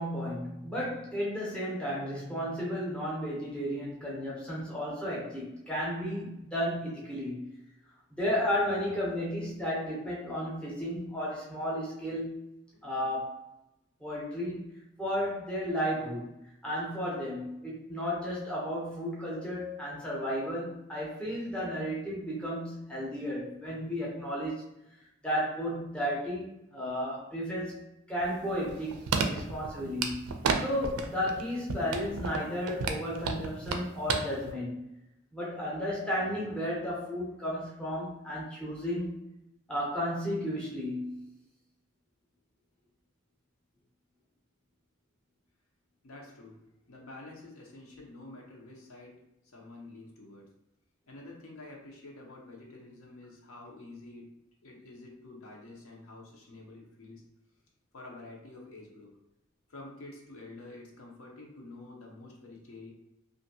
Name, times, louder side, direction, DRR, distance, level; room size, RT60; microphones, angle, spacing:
voice 1, 0.0-7.5 8.2-12.4 12.8-13.5 14.0-14.7 15.0-24.6 25.2-27.8 28.1-34.9 35.3-39.1 39.7-41.3, equal, 5° left, -5 dB, 0.5 m, -33 dB
sound 1, 28.2-30.6 30.8-31.4 31.7-34.2 34.5-34.6, right 5 dB, 90° right, 0.4 m, -31 dB
voice 2, 46.0-46.6 46.9-49.2 49.4-50.5 51.0-54.3 54.6-57.2 57.9-59.1 59.7-62.9, left 2 dB, 80° left, -1 dB, 0.7 m, -48 dB
2.6 x 2.5 x 2.6 m, 0.90 s
head